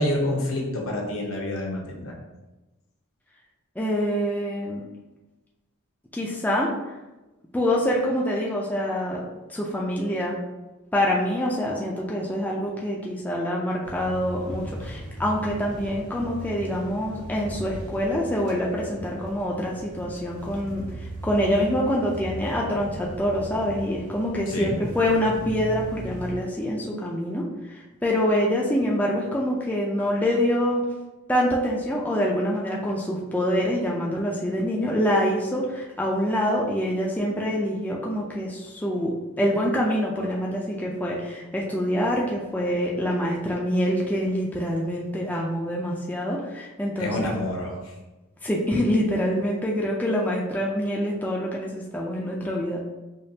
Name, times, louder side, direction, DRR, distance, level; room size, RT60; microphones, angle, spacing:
voice 1, 0.0-2.1 24.5-24.8 47.0-47.9, left 1 dB, 70° left, -1 dB, 0.9 m, -27 dB
voice 2, 3.8-4.8 6.1-7.0 7.5-9.2 9.5-10.4 10.9-30.8 31.3-47.3 48.4-52.8, equal, 5° left, -3 dB, 0.4 m, -25 dB
sound 1, 13.8-26.3, right 1 dB, 50° right, 0.7 m, -38 dB
5.1 x 2.3 x 2.7 m, 1.1 s
head